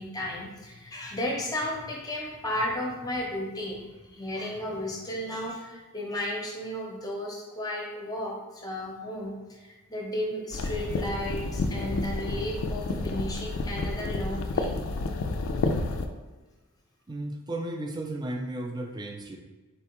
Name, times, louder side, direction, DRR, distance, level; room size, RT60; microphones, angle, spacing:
voice 1, 0.0-14.8, left 1 dB, 15° left, -2 dB, 0.7 m, -34 dB
sound 1, 10.5-16.1, left 3 dB, 65° left, 0.4 m, -30 dB
voice 2, 17.1-19.4, right 1 dB, 20° right, 3 dB, 0.4 m, -34 dB
4.2 x 3.3 x 3.0 m, 1.2 s
head